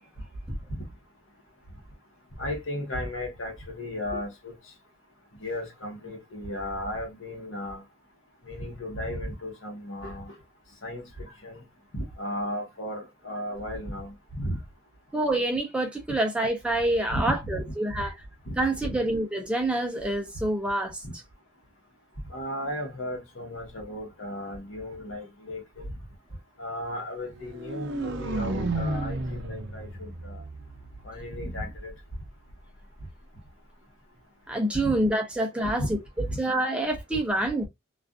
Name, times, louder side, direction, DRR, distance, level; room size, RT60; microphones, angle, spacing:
voice 1, 2.4-4.5 5.4-7.8 8.4-10.3 10.8-11.6 11.9-14.6 17.1-17.6 18.4-18.5 18.8-19.0 21.0-21.1 22.3-25.9 26.6-30.4 31.0-31.9 34.8-34.9 35.8-35.9 36.2-36.4, left 1 dB, 70° left, 1.0 m, -35 dB
voice 2, 15.1-18.1 18.6-21.0 34.5-36.0 36.4-37.7, right 1 dB, 5° right, 0.4 m, -27 dB
sound 1, 27.4-31.4, right 2 dB, 60° right, 0.5 m, -32 dB
2.4 x 2.3 x 2.2 m
head